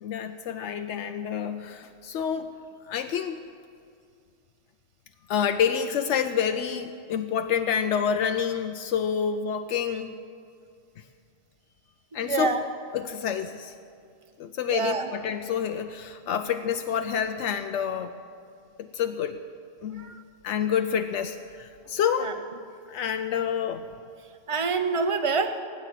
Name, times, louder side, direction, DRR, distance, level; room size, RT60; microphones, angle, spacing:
voice 1, 0.0-2.5 2.9-3.4 5.3-10.2 12.1-12.6 12.9-13.7 14.4-18.1 18.8-19.4 19.8-20.1 20.4-22.4 22.9-23.8, left 8 dB, 80° left, 7 dB, 0.9 m, -28 dB
voice 2, 12.1-12.6 14.7-15.1 20.0-20.2 22.2-22.3 24.5-25.5, right 4 dB, 30° right, 8 dB, 0.8 m, -26 dB
17.0 x 9.2 x 8.2 m, 2.3 s
omnidirectional pair, 1.2 m